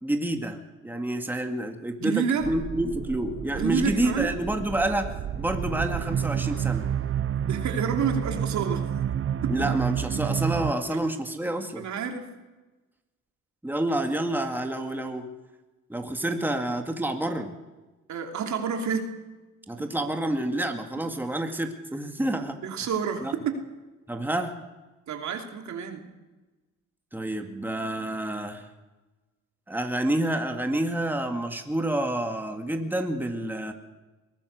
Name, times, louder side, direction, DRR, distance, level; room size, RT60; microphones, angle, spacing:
voice 1, 0.0-6.9 9.5-11.9 13.6-15.3 15.9-17.5 19.7-22.6 23.2-23.3 24.1-24.5 27.1-28.7 29.7-33.7, right 1 dB, 5° right, 4 dB, 2.2 m, -28 dB
voice 2, 2.0-2.5 3.5-4.4 7.5-8.9 9.4-9.7 10.9-11.0 11.8-12.3 18.1-19.1 22.6-23.3 25.1-26.1, right 6 dB, 70° right, 3 dB, 3.1 m, -29 dB
sound 1, 2.4-10.7, right 9 dB, 45° right, 0.8 m, -30 dB
22.5 x 18.0 x 6.6 m, 1.2 s
cardioid pair, 90°, 30 cm